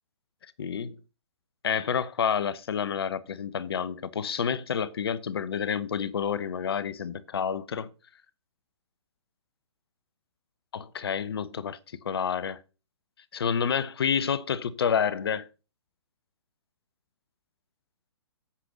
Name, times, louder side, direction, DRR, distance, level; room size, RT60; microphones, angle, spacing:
voice 1, 0.6-1.0 1.6-7.9 10.7-11.8 12.0-12.6 13.3-15.5, left 7 dB, 55° left, 0.9 m, -29 dB
8.5 x 7.9 x 3.9 m
figure-of-eight pair, 125°, 15 cm